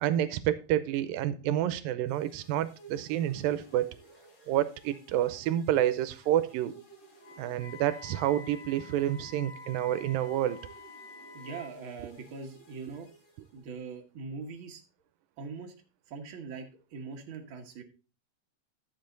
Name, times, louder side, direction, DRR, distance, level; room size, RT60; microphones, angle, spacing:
voice 1, 0.0-3.9 4.5-6.7 7.4-10.6, right 12 dB, 80° right, 2.3 m, -29 dB
sound 1, 2.1-13.9, right 3 dB, 60° left, 6.1 m, -57 dB
Wind instrument woodwind instrument, 7.2-11.8, left 4 dB, 75° left, 3.5 m, -49 dB
voice 2, 11.3-13.1 13.5-14.8 15.4-15.7 16.1-17.8, right 4 dB, 55° right, 1.5 m, -42 dB
11.0 x 7.7 x 3.8 m
omnidirectional pair, 4.2 m